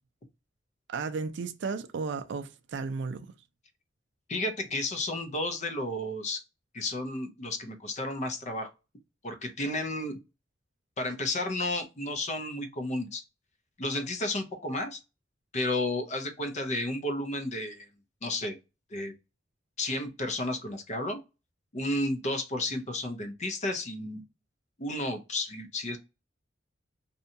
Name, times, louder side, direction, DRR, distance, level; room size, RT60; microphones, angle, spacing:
voice 1, 0.9-3.3, right 4 dB, 65° right, 0.4 m, -34 dB
voice 2, 4.3-6.4 6.7-8.7 9.2-10.2 11.0-13.2 13.8-15.0 15.5-17.9 18.2-18.6 18.9-19.1 19.8-21.2 21.7-24.2 24.8-26.0, left 1 dB, 40° left, 0.5 m, -32 dB
2.7 x 2.2 x 2.6 m
head